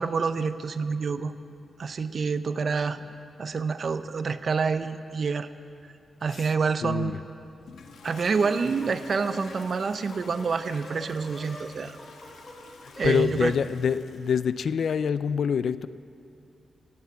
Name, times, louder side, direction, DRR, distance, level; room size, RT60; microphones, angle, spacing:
voice 1, 0.0-1.3 1.8-3.0 3.4-5.5 6.2-7.1 8.0-12.0 13.0-13.5, right 5 dB, 45° right, 11 dB, 0.5 m, -27 dB
voice 2, 6.8-7.2 12.8-15.9, left 7 dB, 65° left, 15 dB, 0.4 m, -26 dB
Toilet flush, 7.6-14.5, left 4 dB, 85° left, 1.2 m, -48 dB
sound 1, 8.3-9.6 9.9-10.4 10.7-11.7 12.0-12.6 12.9-13.3, left 1 dB, 20° left, 3.3 m, -44 dB
16.5 x 8.1 x 8.4 m, 2.5 s
wide cardioid pair, 145°, 0 cm